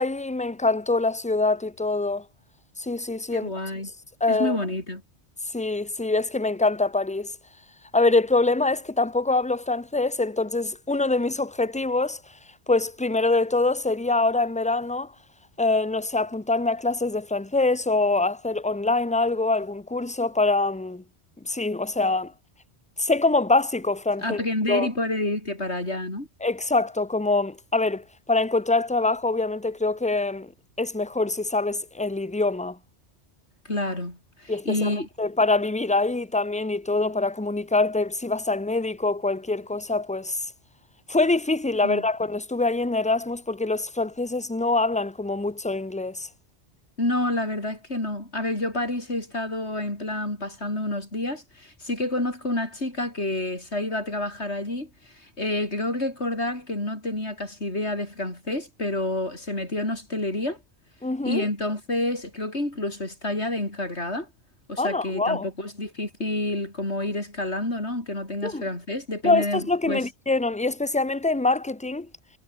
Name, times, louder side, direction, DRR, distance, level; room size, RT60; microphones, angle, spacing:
voice 1, 0.0-2.2 2.8-3.5 4.2-4.6 5.5-7.3 7.9-12.2 12.7-15.1 15.6-21.0 21.4-22.3 23.0-24.4 24.7-24.9 26.4-30.5 30.8-32.8 34.5-40.5 41.1-46.3 61.0-61.5 64.8-65.5 68.4-68.6 69.2-72.1, left 3 dB, 5° left, 1.0 m, -24 dB
voice 2, 3.3-3.9 4.3-5.0 24.2-26.3 33.6-35.1 41.8-42.0 47.0-60.6 61.2-64.3 64.7-70.1, left 1 dB, 80° left, 6.7 m, -29 dB
omnidirectional pair, 1.1 m